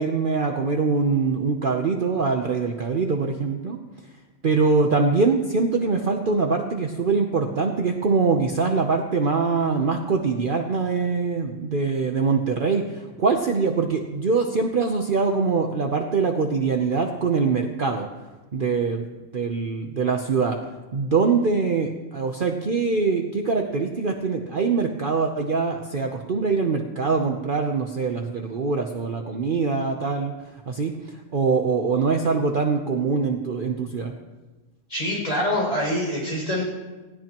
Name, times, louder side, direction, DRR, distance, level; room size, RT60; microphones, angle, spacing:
voice 1, 0.0-3.8 4.4-18.1 18.5-19.1 19.3-20.6 20.9-30.3 30.7-31.0 31.3-34.1, right 4 dB, 45° right, 3 dB, 0.9 m, -23 dB
voice 2, 34.9-36.6, left 1 dB, 30° left, -3 dB, 6.2 m, -25 dB
19.0 x 16.5 x 3.0 m, 1.2 s
omnidirectional pair, 1.3 m